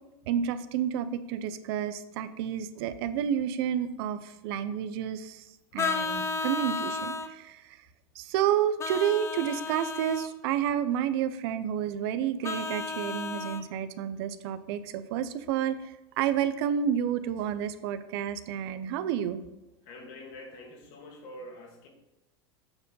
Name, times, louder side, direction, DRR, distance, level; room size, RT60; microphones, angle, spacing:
voice 1, 0.3-5.5 5.7-7.8 8.2-19.4, right 9 dB, 65° right, 11 dB, 0.6 m, -30 dB
Vehicle horn car horn honking, 5.8-7.3 8.8-10.3 12.4-13.6, left 4 dB, 20° left, 0.6 m, -33 dB
voice 2, 19.8-21.9, left 1 dB, 60° left, 2 dB, 2.0 m, -45 dB
7.8 x 4.5 x 5.5 m, 0.95 s
supercardioid pair, 125°, 14 cm